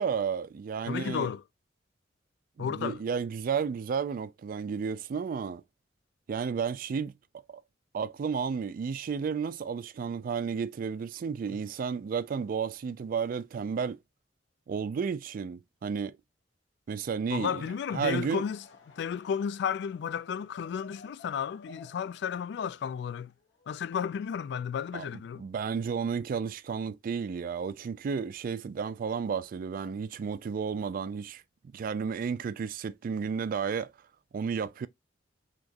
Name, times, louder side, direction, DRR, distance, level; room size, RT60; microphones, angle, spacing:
voice 1, 0.0-1.3 2.6-5.6 6.3-7.4 7.9-14.0 14.7-16.2 16.9-17.6 17.9-18.4 24.9-25.1 25.4-31.4 31.7-33.9 34.3-34.9, right 6 dB, 50° right, 0.3 m, -32 dB
voice 2, 0.9-1.4 2.6-3.0 17.3-18.6 19.0-23.3 23.7-25.5, left 7 dB, 65° left, 0.3 m, -33 dB
Laughter / Crowd, 17.8-24.2, left 3 dB, 85° left, 0.9 m, -56 dB
4.2 x 2.9 x 2.8 m
head